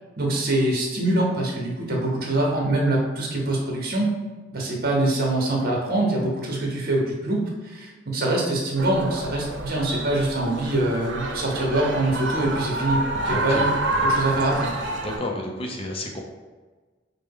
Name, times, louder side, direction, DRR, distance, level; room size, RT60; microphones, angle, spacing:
voice 1, 0.2-4.1 4.5-13.7 14.0-14.7, right 1 dB, 55° right, -1 dB, 0.9 m, -24 dB
sound 1, 8.8-15.2, right 2 dB, 75° right, 0.7 m, -28 dB
voice 2, 13.3-13.7 15.0-16.2, left 1 dB, 30° left, 0 dB, 0.6 m, -31 dB
4.6 x 2.1 x 3.5 m, 1.3 s
head